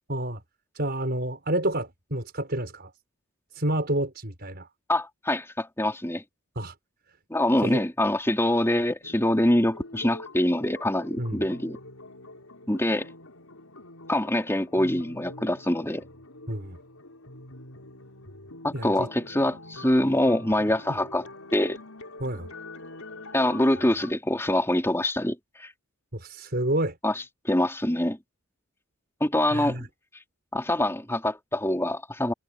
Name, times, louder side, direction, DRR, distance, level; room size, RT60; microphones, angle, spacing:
voice 1, 0.1-0.4 0.8-2.9 3.5-4.7 6.6-6.7 7.6-7.8 11.2-11.4 16.5-16.8 18.7-19.1 22.2-22.5 26.1-26.9 29.5-29.9, right 1 dB, 50° right, 5.5 m, -29 dB
voice 2, 4.9-6.2 7.3-11.8 12.7-13.1 14.1-16.0 18.6-21.3 21.5-21.8 23.3-25.7 27.0-28.2 29.2-29.8 30.5-32.3, left 1 dB, 10° left, 3.6 m, -25 dB
sound 1, 9.0-24.1, left 2 dB, 80° left, 6.6 m, -45 dB
head